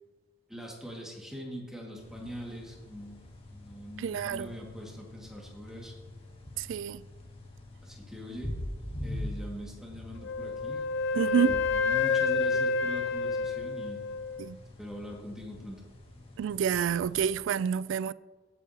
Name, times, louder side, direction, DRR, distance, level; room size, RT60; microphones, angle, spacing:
voice 1, 0.5-3.2 3.5-5.9 7.8-8.5 9.0-10.8 11.1-14.0 14.8-15.8, equal, 5° right, 1.9 m, -42 dB
sound 1, 1.9-17.4, left 1 dB, 30° left, 1.9 m, -44 dB
voice 2, 4.0-4.5 6.6-7.0 11.1-11.5 14.4-14.6 16.4-18.1, right 8 dB, 70° right, 0.3 m, -28 dB
Wind instrument woodwind instrument, 10.2-14.4, left 4 dB, 65° left, 0.7 m, -29 dB
16.0 x 8.5 x 2.9 m
head